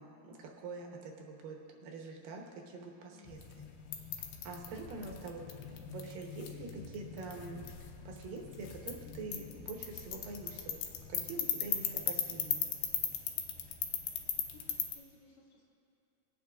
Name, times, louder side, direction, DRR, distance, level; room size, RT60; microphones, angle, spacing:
voice 1, 0.0-3.7 3.9-4.1 4.4-5.4 5.9-10.8 11.1-12.7, right 3 dB, 80° right, 1 dB, 2.8 m, -45 dB
voice 2, 3.0-3.4 14.5-15.6, left 4 dB, 45° left, -5 dB, 2.6 m, -60 dB
sound 1, 3.2-14.9, left 8 dB, 80° left, 2.4 m, -39 dB
25.0 x 8.7 x 2.5 m, 2.8 s
omnidirectional pair, 4.0 m